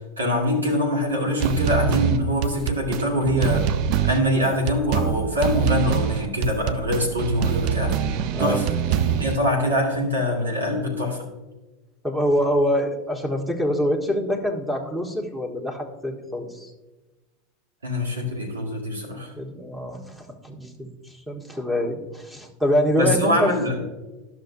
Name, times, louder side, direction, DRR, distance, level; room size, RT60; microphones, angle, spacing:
voice 1, 0.2-3.7 4.0-8.0 8.4-11.3 17.8-19.3 22.9-23.8, left 1 dB, 90° right, -1 dB, 2.0 m, -24 dB
sound 1, 1.4-9.4, right 9 dB, 55° right, 0.5 m, -24 dB
voice 2, 8.3-8.6 12.0-16.7 19.4-20.9 21.3-23.5, equal, 10° right, 2 dB, 1.5 m, -25 dB
13.5 x 6.0 x 2.7 m, 1.1 s
hypercardioid pair, 85°, 0 cm